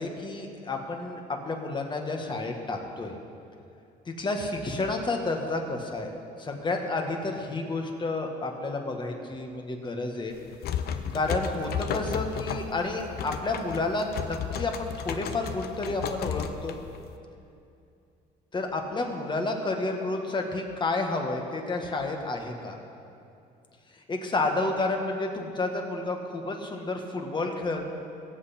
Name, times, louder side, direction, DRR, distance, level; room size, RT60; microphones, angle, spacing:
voice 1, 0.0-3.1 4.1-6.1 6.4-10.4 11.1-16.8 18.5-22.8 23.9-27.8, left 2 dB, 30° left, 3 dB, 1.6 m, -30 dB
sound 1, 10.3-17.1, left 7 dB, 70° left, 0.8 m, -34 dB
21.0 x 8.1 x 4.4 m, 2.6 s
cardioid pair, 110°, 17 cm